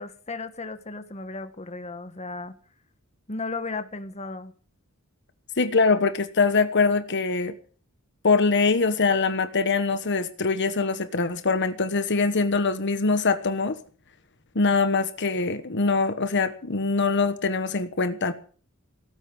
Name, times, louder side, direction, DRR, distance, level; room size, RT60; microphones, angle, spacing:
voice 1, 0.0-2.5 3.3-4.5, left 3 dB, 30° left, 9 dB, 1.5 m, -35 dB
voice 2, 5.6-7.5 8.2-13.8 14.5-18.3, left 4 dB, 55° left, 10 dB, 1.2 m, -23 dB
18.0 x 9.0 x 7.9 m, 0.42 s
head